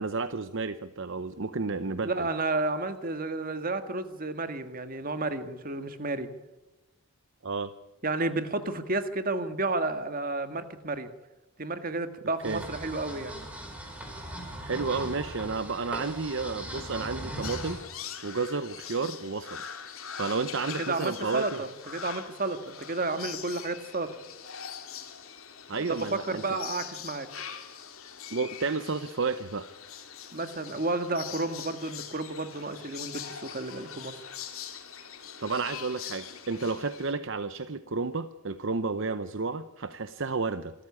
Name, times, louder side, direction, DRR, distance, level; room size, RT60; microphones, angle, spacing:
voice 1, 0.0-2.3 7.4-7.7 12.4-12.6 14.6-17.8 18.2-19.6 20.2-21.6 25.7-26.6 28.3-29.7 35.4-40.7, right 4 dB, 55° right, 12 dB, 0.8 m, -31 dB
voice 2, 2.0-6.3 8.0-11.1 11.6-13.3 20.8-24.1 26.2-27.3 30.3-34.1, right 2 dB, 40° right, 9 dB, 1.7 m, -31 dB
sound 1, 12.4-17.8, right 1 dB, 5° right, 4.6 m, -39 dB
sound 2, 17.4-37.1, left 8 dB, 65° left, 2.9 m, -42 dB
26.0 x 13.5 x 9.8 m, 1.0 s
head